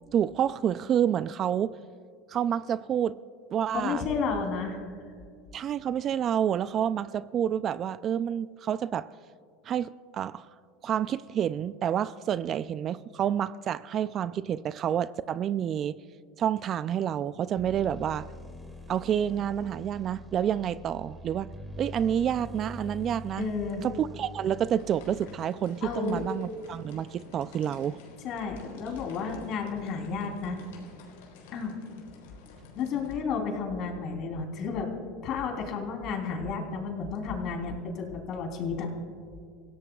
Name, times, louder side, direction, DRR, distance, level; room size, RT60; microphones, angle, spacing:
voice 1, 0.1-1.8 2.3-3.2 3.5-4.1 5.5-9.1 9.7-10.5 10.8-16.0 16.4-18.3 18.9-21.5 21.8-23.5 23.8-28.0, right 9 dB, 40° right, 16 dB, 0.4 m, -29 dB
voice 2, 3.7-5.0 23.4-23.8 25.8-26.2 28.2-30.6 31.5-31.7 32.7-34.9 35.2-38.9, left 5 dB, 50° left, 2 dB, 3.4 m, -32 dB
sound 1, 17.5-25.5, left 2 dB, 5° right, 2.6 m, -44 dB
sound 2, 24.8-33.2, left 4 dB, 80° left, 3.8 m, -50 dB
27.0 x 16.5 x 2.4 m, 2.1 s
supercardioid pair, 110°, 0 cm